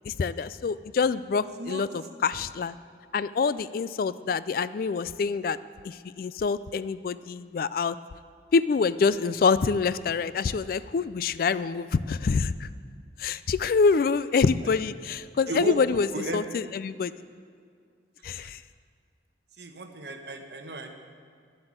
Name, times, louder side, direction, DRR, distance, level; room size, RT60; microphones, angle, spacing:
voice 1, 0.1-2.8 3.1-5.6 5.8-8.0 8.5-12.7 13.2-16.1 16.3-17.1 18.2-18.6, left 5 dB, 50° left, 16 dB, 0.3 m, -26 dB
voice 2, 15.5-16.4 18.4-18.5 19.6-20.9, right 2 dB, 65° right, 5 dB, 1.1 m, -34 dB
11.0 x 7.8 x 8.7 m, 2.1 s
head